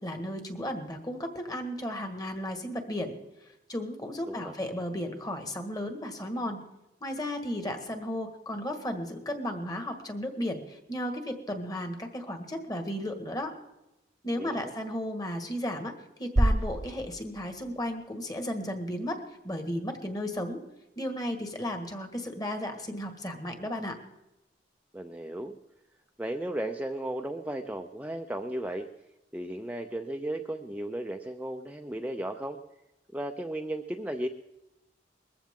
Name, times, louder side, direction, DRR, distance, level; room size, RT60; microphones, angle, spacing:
voice 1, 0.0-3.1 3.7-6.6 7.0-13.5 14.2-15.9 16.2-20.6 21.0-24.0, left 1 dB, 20° left, 6 dB, 1.7 m, -34 dB
voice 2, 14.4-14.7 24.9-25.6 26.2-28.9 29.3-32.6 33.1-34.3, right 1 dB, 10° right, 4 dB, 0.5 m, -35 dB
sound 1, 16.4-18.4, right 1 dB, 40° right, 0.8 m, -29 dB
21.0 x 14.5 x 3.7 m, 0.95 s
head